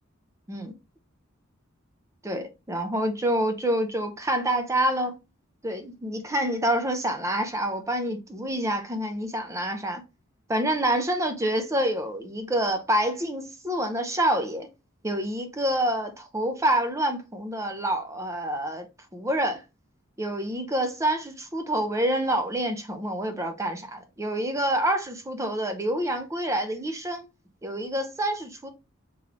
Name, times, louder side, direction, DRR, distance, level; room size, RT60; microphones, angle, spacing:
voice 1, 2.2-5.1 5.6-10.0 10.5-14.7 15.0-18.9 19.1-19.6 20.2-27.2 27.6-28.7, right 1 dB, 15° right, 0.6 m, -27 dB
3.8 x 3.1 x 3.0 m
head